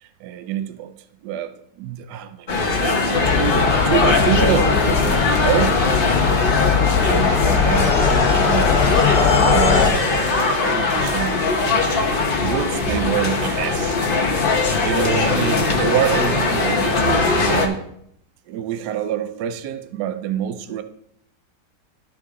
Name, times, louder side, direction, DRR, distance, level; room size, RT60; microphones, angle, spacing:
voice 1, 0.0-0.9 1.2-5.8 6.2-8.7 9.4-11.5 11.9-12.0 12.4-14.0 14.8-17.8 18.5-20.8, right 10 dB, 75° right, 1.2 m, -26 dB
sound 1, 2.5-17.7, left 3 dB, 40° left, 1.0 m, -20 dB
sound 2, 3.2-9.9, left 6 dB, 65° left, 1.5 m, -19 dB
13.5 x 4.9 x 3.6 m
omnidirectional pair, 1.8 m